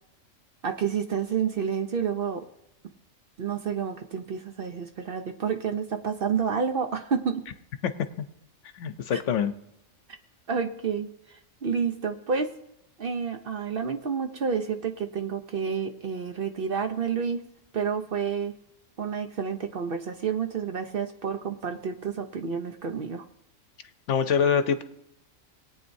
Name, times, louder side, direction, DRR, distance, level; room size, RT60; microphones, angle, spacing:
voice 1, 0.6-2.5 3.4-7.4 9.1-9.2 10.5-12.5 13.0-17.4 17.7-18.5 19.0-23.2, right 6 dB, 55° right, 6 dB, 0.8 m, -29 dB
voice 2, 8.8-9.5 24.1-24.8, left 7 dB, 70° left, 10 dB, 1.0 m, -24 dB
21.0 x 8.8 x 2.7 m, 0.83 s
omnidirectional pair, 1.4 m